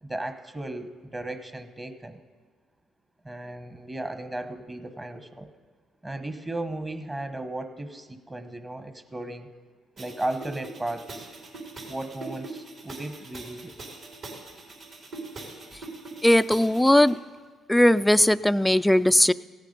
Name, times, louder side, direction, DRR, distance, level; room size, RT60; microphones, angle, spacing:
voice 1, 0.0-2.2 3.2-5.5 6.0-9.5 10.0-11.3 11.9-13.8, right 1 dB, 20° right, 8 dB, 1.1 m, -35 dB
sound 1, 10.0-17.1, right 3 dB, 65° right, 3.9 m, -42 dB
voice 2, 16.2-17.2 17.7-19.3, left 1 dB, 5° left, 16 dB, 0.3 m, -19 dB
16.5 x 9.2 x 5.3 m, 1.5 s
supercardioid pair, 70°, 0 cm